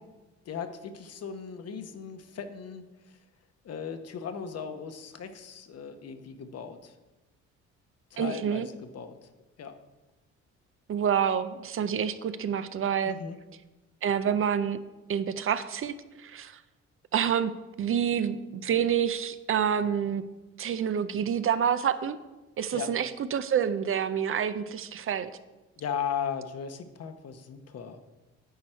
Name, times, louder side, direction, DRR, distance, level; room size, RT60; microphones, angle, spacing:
voice 1, 0.5-3.1 3.6-6.9 8.1-9.3 9.6-9.7 13.1-13.4 22.7-22.9 25.8-28.0, left 7 dB, 55° left, 8 dB, 0.9 m, -37 dB
voice 2, 8.2-8.7 10.9-13.2 14.0-14.8 15.1-15.9 16.2-16.6 17.1-17.5 17.8-20.2 20.6-22.2 22.6-25.3, right 8 dB, 45° right, 13 dB, 0.5 m, -27 dB
10.5 x 4.7 x 4.4 m, 1.1 s
cardioid pair, 90°, 30 cm